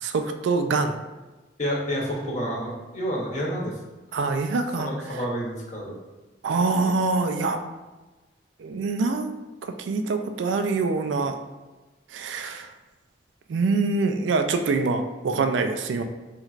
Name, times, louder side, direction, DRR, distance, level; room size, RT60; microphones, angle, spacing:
voice 1, 0.0-1.0 4.1-4.9 6.4-7.6 8.6-11.4 12.1-12.7 13.5-16.0, right 3 dB, 80° right, 7 dB, 0.3 m, -25 dB
voice 2, 1.6-3.8 4.8-5.9, equal, 40° left, -2 dB, 0.8 m, -29 dB
4.1 x 3.1 x 2.4 m, 1.2 s
head